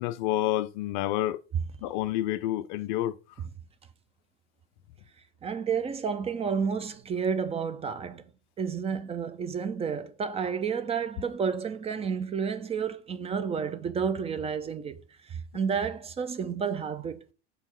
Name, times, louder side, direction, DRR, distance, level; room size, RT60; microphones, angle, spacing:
voice 1, 0.0-1.4 1.8-3.1, left 14 dB, 45° left, 0.4 m, -28 dB
voice 2, 5.4-8.2 8.6-15.0 15.3-17.2, right 6 dB, 20° right, 0.5 m, -31 dB
4.5 x 4.0 x 5.4 m
figure-of-eight pair, 80°, 33 cm